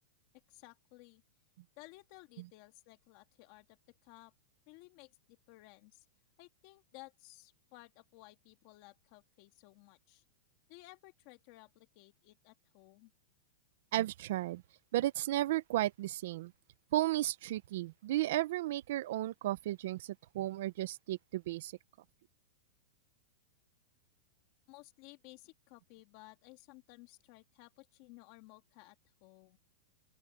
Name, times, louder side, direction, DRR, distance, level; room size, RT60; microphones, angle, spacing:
voice 1, 0.5-1.2 1.8-4.3 4.7-6.1 6.4-10.2 10.7-13.1 24.7-29.0 29.2-29.6, left 21 dB, 35° left, 2.0 m, -57 dB
voice 2, 13.9-14.6 14.9-16.5 16.9-21.7, right 15 dB, 55° right, 0.7 m, -34 dB
open air
supercardioid pair, 170°, 0 cm